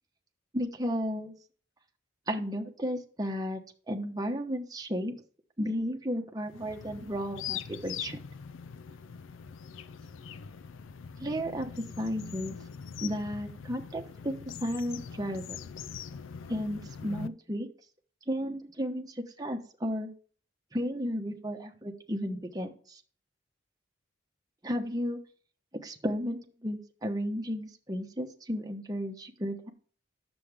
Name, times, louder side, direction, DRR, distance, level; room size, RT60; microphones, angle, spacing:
voice 1, 0.5-1.3 2.3-3.6 3.9-5.1 5.6-8.2 11.2-12.6 13.0-14.3 14.6-15.6 16.5-17.7 18.3-20.1 20.7-23.0 24.6-25.2 25.8-29.7, equal, 20° right, 3 dB, 1.0 m, -33 dB
sound 1, 6.5-17.3, left 7 dB, 90° left, 0.4 m, -42 dB
9.9 x 7.0 x 3.5 m, 0.43 s
head